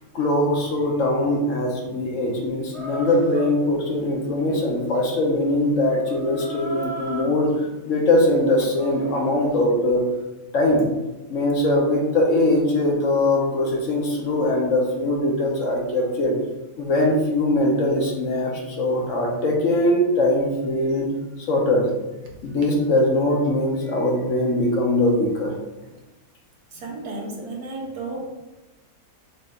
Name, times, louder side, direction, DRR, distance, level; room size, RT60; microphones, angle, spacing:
voice 1, 0.1-7.5 7.8-10.0 10.5-10.8 11.3-16.3 16.8-21.1 21.5-21.9 22.4-25.5, left 1 dB, 60° left, -1 dB, 1.2 m, -21 dB
Chicken rooster, 2.7-9.7, right 1 dB, 50° right, 1.1 m, -38 dB
voice 2, 26.7-28.2, right 2 dB, 90° right, -1 dB, 1.5 m, -33 dB
6.5 x 3.2 x 2.5 m, 1.0 s
omnidirectional pair, 1.6 m